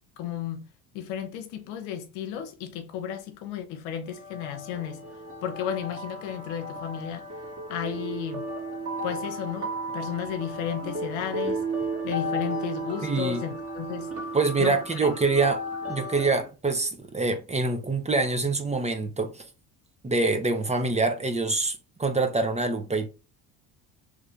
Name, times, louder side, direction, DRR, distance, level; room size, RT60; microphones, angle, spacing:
voice 1, 0.2-0.6 0.9-5.0 5.4-7.3 7.7-8.5 9.0-11.6 12.0-14.1 14.6-15.1, left 9 dB, 80° left, 0.9 m, -33 dB
sound 1, 4.1-16.4, right 1 dB, 30° right, 1.7 m, -34 dB
voice 2, 13.0-13.4 14.3-19.4 20.0-23.1, right 3 dB, 15° right, 0.7 m, -25 dB
3.2 x 2.5 x 3.3 m
supercardioid pair, 75°, 44 cm